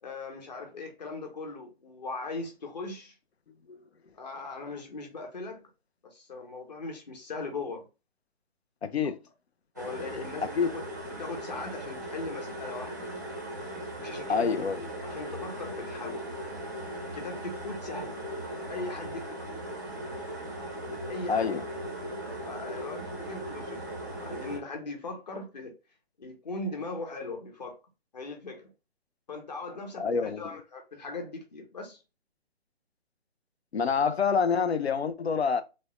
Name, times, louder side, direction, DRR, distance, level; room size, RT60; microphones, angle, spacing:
voice 1, 0.0-3.1 4.1-5.6 6.1-7.8 9.8-10.6 11.1-13.1 14.0-14.5 15.0-16.2 17.1-18.1 18.7-19.6 21.1-21.5 22.2-23.8 24.2-25.7 26.2-27.8 28.1-28.7 29.3-32.0, left 3 dB, 40° left, 0.9 m, -39 dB
voice 2, 8.8-9.2 10.5-10.7 14.3-14.9 21.3-21.6 30.0-30.6 33.7-35.6, left 6 dB, 75° left, 0.5 m, -27 dB
sound 1, 9.8-24.6, right 1 dB, 20° right, 0.4 m, -38 dB
3.4 x 2.1 x 2.9 m
figure-of-eight pair, 140°, 32 cm